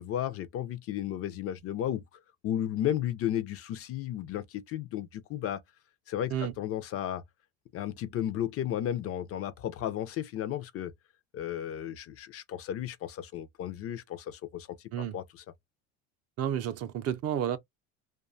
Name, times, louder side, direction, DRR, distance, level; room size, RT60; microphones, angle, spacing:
voice 1, 0.0-2.0 2.4-5.6 6.1-7.2 7.7-10.9 11.3-15.4, left 11 dB, 40° left, 0.4 m, -34 dB
voice 2, 16.4-17.6, right 10 dB, 45° right, 0.4 m, -31 dB
2.5 x 2.2 x 2.4 m
supercardioid pair, 105°, 35 cm